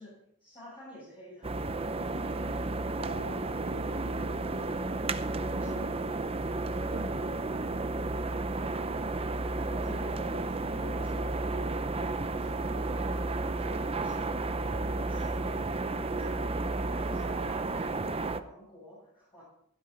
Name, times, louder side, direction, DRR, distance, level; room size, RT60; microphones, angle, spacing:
voice 1, 0.0-2.3 5.3-6.1 9.7-16.5 17.0-19.4, left 1 dB, 25° left, -8 dB, 6.9 m, -49 dB
sound 1, 1.4-18.4, right 2 dB, 30° right, 0.7 m, -32 dB
voice 2, 3.0-5.3 5.6-5.9 6.9-7.9 17.4-17.6, right 2 dB, 70° right, 1 dB, 2.2 m, -44 dB
17.0 x 12.0 x 4.0 m, 0.69 s
head